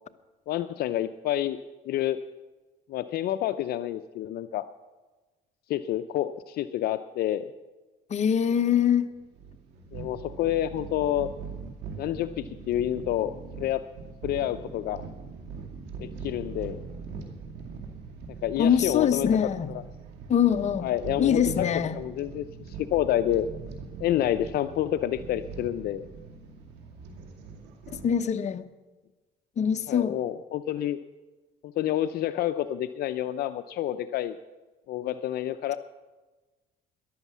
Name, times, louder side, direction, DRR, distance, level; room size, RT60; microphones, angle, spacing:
voice 1, 0.5-1.6 1.9-2.2 2.9-4.7 5.7-7.4 9.9-11.3 12.0-13.8 14.2-15.0 16.0-16.8 18.4-19.3 20.8-21.7 21.9-23.5 24.0-26.1 29.9-31.0 31.8-34.4 34.9-35.8, left 12 dB, 65° left, 11 dB, 0.5 m, -28 dB
voice 2, 8.1-9.1 18.6-19.7 20.3-20.9 21.2-22.0 28.0-28.6 29.6-30.2, left 8 dB, 45° left, 9 dB, 0.9 m, -23 dB
sound 1, 8.7-28.1, right 5 dB, 85° right, 2.5 m, -41 dB
14.0 x 11.0 x 7.3 m, 1.2 s
cardioid pair, 110°, 17 cm